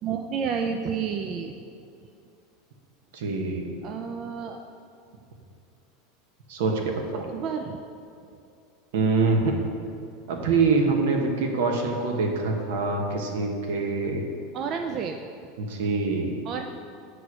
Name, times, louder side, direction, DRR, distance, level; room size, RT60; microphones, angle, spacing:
voice 1, 0.0-1.5 3.8-4.6 7.3-7.8 12.4-12.6 14.5-15.2 16.4-16.6, right 6 dB, 45° right, 5 dB, 0.4 m, -30 dB
voice 2, 3.1-3.7 6.5-7.3 8.9-9.5 10.3-14.2 15.6-16.4, right 4 dB, 75° right, 2 dB, 1.0 m, -25 dB
7.8 x 3.1 x 6.2 m, 2.5 s
supercardioid pair, 115°, 0 cm